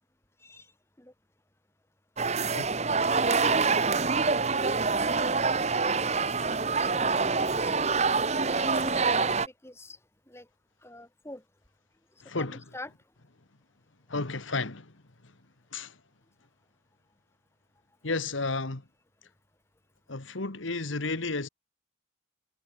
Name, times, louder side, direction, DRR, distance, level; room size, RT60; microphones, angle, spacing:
voice 1, 0.4-0.7 1.0-1.1 6.7-7.8 8.4-10.0 10.3-10.5 10.8-11.4 12.4-12.9, left 1 dB, 15° left, 2.6 m, -45 dB
sound 1, 2.2-9.5, right 4 dB, 35° right, 1.1 m, -26 dB
voice 2, 12.2-12.6 14.1-14.9 15.7-16.0 18.0-18.8 20.1-21.5, left 3 dB, 85° left, 1.8 m, -32 dB
head